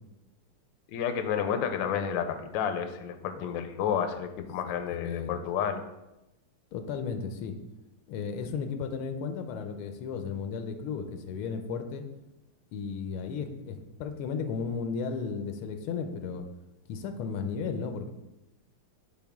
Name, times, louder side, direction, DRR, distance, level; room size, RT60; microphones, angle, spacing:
voice 1, 0.9-5.8, left 8 dB, 70° left, 7 dB, 1.2 m, -30 dB
voice 2, 4.6-5.4 6.7-7.6 8.1-12.0 12.7-16.4 16.9-18.1, left 5 dB, 85° left, 7 dB, 1.6 m, -34 dB
9.1 x 4.8 x 3.5 m, 0.96 s
omnidirectional pair, 2.4 m